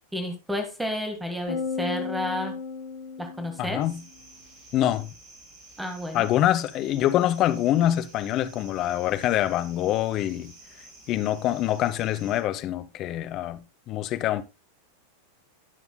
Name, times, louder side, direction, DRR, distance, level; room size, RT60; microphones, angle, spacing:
voice 1, 0.1-2.5 3.2-3.8 5.8-6.3, left 1 dB, 5° right, 1.6 m, -31 dB
sound 1, 1.5-4.0, left 5 dB, 70° left, 1.4 m, -34 dB
voice 2, 3.6-4.0 4.7-5.1 6.1-10.5 11.1-14.4, left 12 dB, 35° left, 0.8 m, -25 dB
sound 2, 3.8-12.4, right 2 dB, 35° right, 3.0 m, -51 dB
17.5 x 6.0 x 2.2 m
figure-of-eight pair, 90°, 0 cm